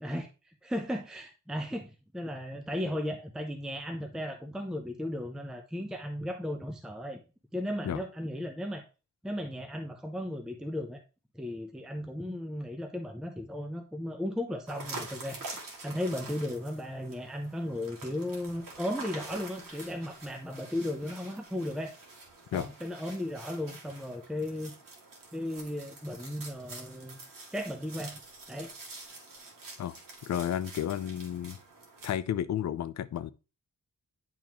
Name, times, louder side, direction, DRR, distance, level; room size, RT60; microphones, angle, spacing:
voice 1, 0.0-7.2 7.5-8.8 9.2-11.0 11.3-21.9 22.5-24.7 25.3-27.2 27.5-28.2 28.5-28.7, left 1 dB, ahead, 0.6 m, -36 dB
sound 1, 14.7-32.1, right 3 dB, 80° right, 2.1 m, -47 dB
voice 2, 30.2-31.6 32.0-33.3, left 10 dB, 55° left, 0.5 m, -32 dB
10.5 x 3.6 x 2.9 m
wide cardioid pair, 165°, 33 cm